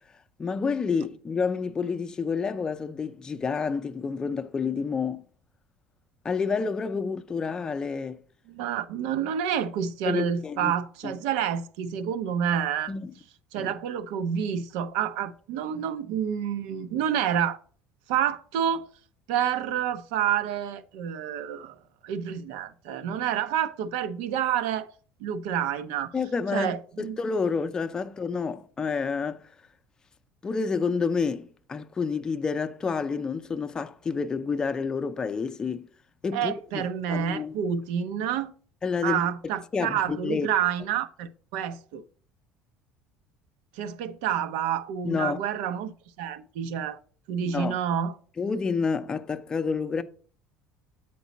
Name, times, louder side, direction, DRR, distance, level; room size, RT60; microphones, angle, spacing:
voice 1, 0.4-5.2 6.2-8.2 10.1-10.7 11.0-11.2 12.9-13.1 13.6-13.7 26.1-29.5 30.4-35.9 36.2-37.5 38.8-39.2 39.7-40.5 45.0-45.4 47.4-47.8 48.4-50.0, left 5 dB, 20° left, 0.5 m, -29 dB
voice 2, 8.5-12.9 13.5-17.6 18.1-18.9 19.3-21.8 22.0-24.9 25.2-26.1 26.5-27.2 36.3-38.5 39.0-42.0 43.7-45.9 46.2-47.0 47.3-48.2, right 9 dB, 90° right, 0.7 m, -28 dB
8.2 x 4.6 x 4.1 m
cardioid pair, 150°, 4 cm